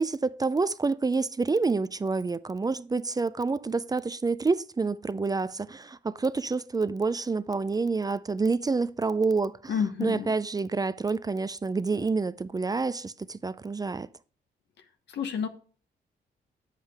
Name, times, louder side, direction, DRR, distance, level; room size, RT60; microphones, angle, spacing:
voice 1, 0.0-9.7 10.0-14.1, right 4 dB, 20° right, 0.4 m, -28 dB
voice 2, 9.7-10.3 15.1-15.5, left 7 dB, 85° left, 1.1 m, -29 dB
8.6 x 7.4 x 3.4 m
cardioid pair, 85°, 18 cm